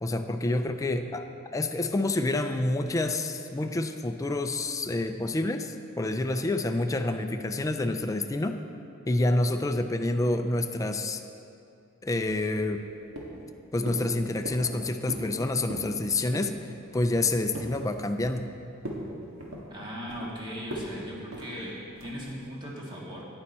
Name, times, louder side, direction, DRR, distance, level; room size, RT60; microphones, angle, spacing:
voice 1, 0.0-1.3 1.5-8.6 9.1-11.2 12.0-12.9 13.7-16.6 16.9-18.5, left 2 dB, 15° left, 6 dB, 0.4 m, -28 dB
sound 1, 12.3-12.9 13.2-13.5 13.9-14.1 14.5-14.8 15.1-15.3 15.6-15.9 16.3-16.6 16.9-17.8 18.2-18.5 18.8-19.1 19.4-20.3 20.7-20.9 21.3-21.5 22.0-22.3, equal, 75° right, 1.7 m, -38 dB
voice 2, 19.7-23.3, equal, 20° right, -4 dB, 1.9 m, -38 dB
9.7 x 9.6 x 4.3 m, 2.6 s
head